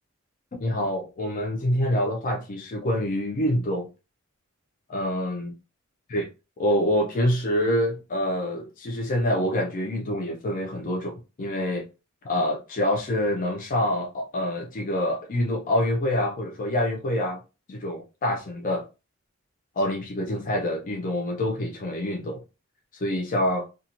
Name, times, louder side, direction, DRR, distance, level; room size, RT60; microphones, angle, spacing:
voice 1, 0.6-3.9 4.9-5.5 6.1-6.3 6.6-11.9 12.2-17.4 17.7-18.8 19.8-22.4 22.9-23.7, left 1 dB, 40° left, 0.5 m, -26 dB
2.8 x 2.3 x 2.5 m
head